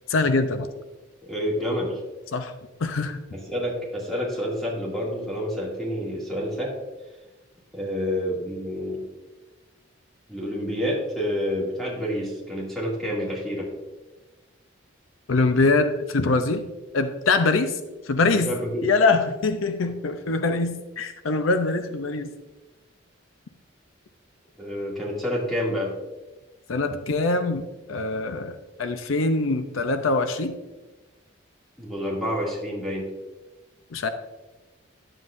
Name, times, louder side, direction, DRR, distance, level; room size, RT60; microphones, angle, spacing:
voice 1, 0.1-0.7 2.3-2.5 2.8-3.2 15.3-16.7 16.9-17.8 18.0-18.5 18.8-22.3 26.7-30.6 33.9-34.1, left 3 dB, 85° left, 9 dB, 0.6 m, -23 dB
voice 2, 1.2-2.0 3.3-6.7 7.7-9.0 10.3-13.7 18.3-18.9 24.6-25.9 31.8-33.1, equal, ahead, -5 dB, 2.2 m, -28 dB
11.0 x 7.6 x 2.5 m, 1.1 s
head